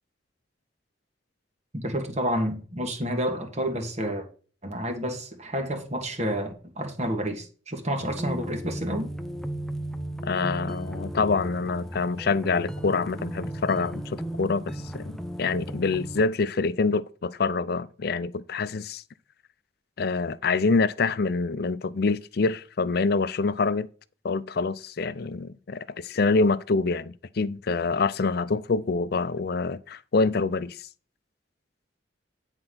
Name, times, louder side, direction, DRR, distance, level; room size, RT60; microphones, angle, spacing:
voice 1, 1.7-4.3 4.6-9.1, equal, 40° right, 1.8 m, -29 dB
sound 1, 8.0-16.2, right 1 dB, ahead, 0.6 m, -35 dB
voice 2, 10.2-19.0 20.0-23.9 24.2-30.9, left 4 dB, 55° left, 0.5 m, -26 dB
9.8 x 4.5 x 5.8 m
head